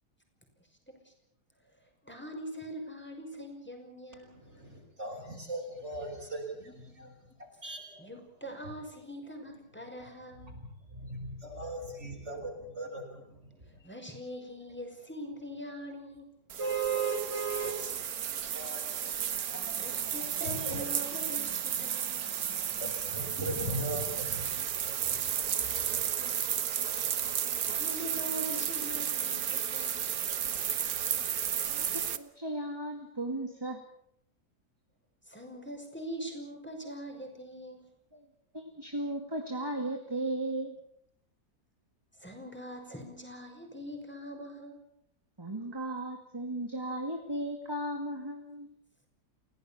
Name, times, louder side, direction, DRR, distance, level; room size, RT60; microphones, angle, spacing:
voice 1, 2.0-4.4 8.0-10.5 13.8-16.3 19.5-22.3 26.0-26.5 27.6-30.1 35.3-37.9 42.2-44.8, equal, 5° left, 3 dB, 5.8 m, -43 dB
voice 2, 4.3-7.1 7.4-8.1 10.4-13.8 16.6-18.0 18.5-18.8 19.5-19.7 20.4-20.9 22.8-25.4 25.7-26.0, right 3 dB, 40° right, -1 dB, 6.1 m, -38 dB
sound 1, 16.5-32.2, right 9 dB, 65° right, 1.6 m, -33 dB
voice 3, 32.1-33.8 38.1-38.2 38.5-40.8 45.4-48.7, right 1 dB, 15° right, 4 dB, 2.3 m, -36 dB
29.5 x 17.0 x 7.2 m, 0.71 s
omnidirectional pair, 1.7 m